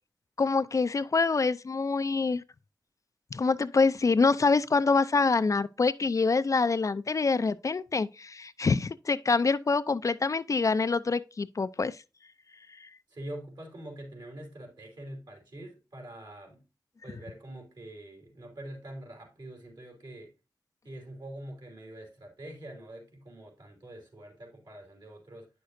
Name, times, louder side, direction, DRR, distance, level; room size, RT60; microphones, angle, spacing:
voice 1, 0.4-2.4 3.3-11.9, left 4 dB, 45° left, 0.4 m, -26 dB
voice 2, 13.1-16.6 17.0-20.3 20.8-25.5, right 1 dB, 65° right, 3.1 m, -45 dB
9.2 x 6.5 x 2.6 m
cardioid pair, 55°, 8 cm